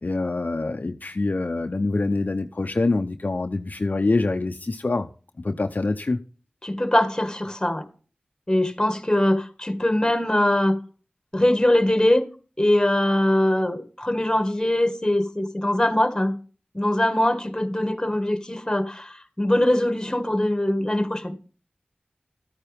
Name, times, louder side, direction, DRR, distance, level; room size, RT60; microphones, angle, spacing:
voice 1, 0.0-5.1 5.4-6.2, left 3 dB, 60° left, 0.8 m, -25 dB
voice 2, 6.6-7.9 8.5-10.8 11.3-12.2 12.6-16.4 16.7-21.3, left 1 dB, 20° left, 1.9 m, -22 dB
13.5 x 9.2 x 3.5 m
wide cardioid pair, 45°, 3 cm